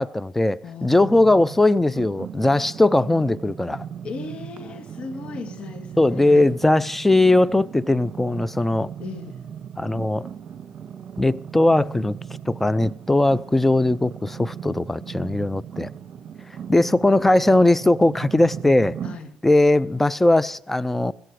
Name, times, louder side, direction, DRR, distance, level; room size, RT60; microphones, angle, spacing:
voice 1, 0.0-3.8 6.0-8.9 9.8-10.2 11.2-12.2 12.5-15.9 16.7-19.0 19.4-21.1, left 2 dB, 10° left, 0.6 m, -19 dB
voice 2, 0.6-1.2 4.0-6.5 9.0-9.4 15.2-15.4 19.0-19.3, left 4 dB, 55° left, 2.1 m, -37 dB
sound 1, 0.9-19.2, right 8 dB, 55° right, 1.6 m, -37 dB
16.0 x 15.0 x 4.9 m
supercardioid pair, 80°, 2 cm